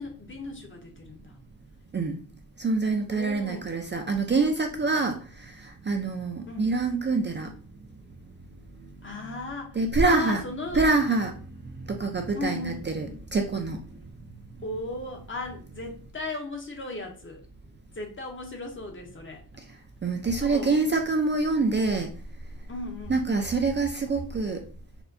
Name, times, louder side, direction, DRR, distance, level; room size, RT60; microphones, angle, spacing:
voice 1, 0.0-1.4 3.1-3.7 6.5-6.8 9.0-9.8 10.0-10.9 12.4-12.8 14.6-17.4 17.9-19.4 20.4-20.8 22.7-23.2, left 2 dB, 35° left, 2 dB, 0.7 m, -36 dB
voice 2, 2.6-7.5 9.8-10.4 10.7-14.0 20.0-22.1 23.1-24.6, right 3 dB, 30° right, 3 dB, 0.4 m, -26 dB
4.2 x 2.2 x 2.6 m, 0.39 s
wide cardioid pair, 140°, 37 cm